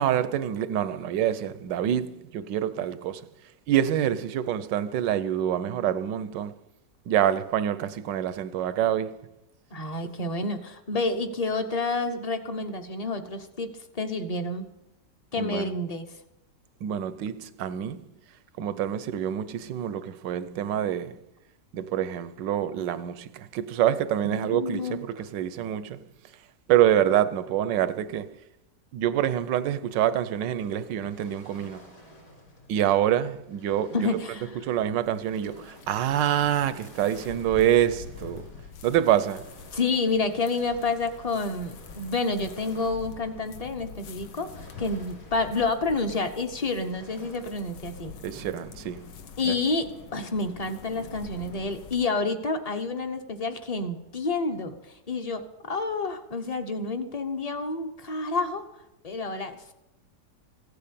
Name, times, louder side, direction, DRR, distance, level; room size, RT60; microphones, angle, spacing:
voice 1, 0.0-3.3 3.7-6.5 7.1-9.2 15.4-15.7 16.8-18.0 18.6-21.2 21.7-26.0 26.7-28.3 28.9-31.8 32.7-34.1 34.6-38.5 38.8-39.5 48.2-49.1 49.5-49.6, right 10 dB, 90° right, 1.4 m, -26 dB
voice 2, 9.7-14.7 15.3-16.1 24.2-25.0 33.9-34.5 39.7-48.1 49.4-54.8 55.1-58.6 59.0-59.7, left 3 dB, 30° left, 0.7 m, -29 dB
Waves surf, 30.6-47.9, equal, 60° left, 4.5 m, -52 dB
sound 1, 34.3-52.1, left 6 dB, 85° left, 1.6 m, -46 dB
15.5 x 8.6 x 6.9 m
omnidirectional pair, 1.9 m